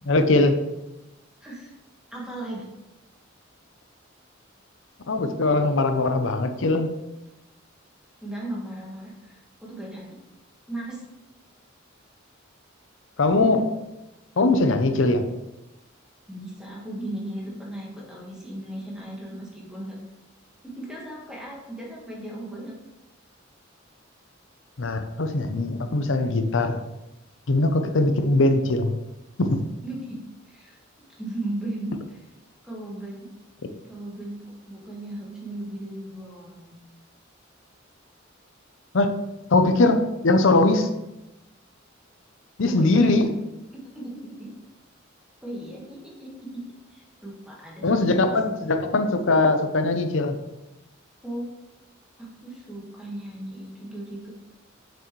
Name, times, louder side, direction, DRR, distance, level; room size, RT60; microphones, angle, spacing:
voice 1, 0.1-0.6 5.1-6.9 13.2-13.7 14.4-15.2 24.8-26.8 27.5-28.9 29.4-29.6 38.9-39.1 39.5-40.9 42.6-43.3 47.8-50.4, left 2 dB, 65° left, 7 dB, 0.7 m, -21 dB
voice 2, 1.4-1.7 2.1-2.7 8.2-10.2 10.7-11.0 16.3-20.0 20.6-22.8 29.8-32.2 32.6-33.3 33.9-36.7 42.7-43.2 43.7-44.5 45.4-46.6 46.9-48.3 51.2-51.5 52.2-54.3, right 1 dB, 5° right, -4 dB, 1.7 m, -36 dB
6.8 x 6.3 x 3.2 m, 0.96 s
head